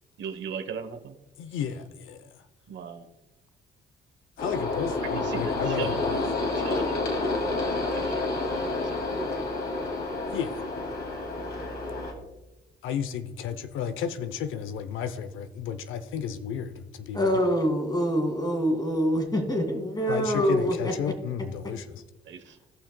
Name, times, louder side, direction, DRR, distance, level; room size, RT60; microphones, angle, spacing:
voice 1, 0.2-1.2 2.7-3.1 5.1-9.5 22.3-22.6, right 6 dB, 65° right, 8 dB, 0.9 m, -39 dB
voice 2, 1.4-2.5 4.4-6.2 10.3-10.6 12.8-17.4 20.1-22.0, left 8 dB, 85° left, 10 dB, 0.6 m, -33 dB
sound 1, 4.4-12.1, left 2 dB, 55° left, 2.2 m, -29 dB
voice 3, 17.1-21.1, equal, 20° left, 4 dB, 2.0 m, -25 dB
17.5 x 5.9 x 2.2 m, 0.98 s
cardioid pair, 90°, 20 cm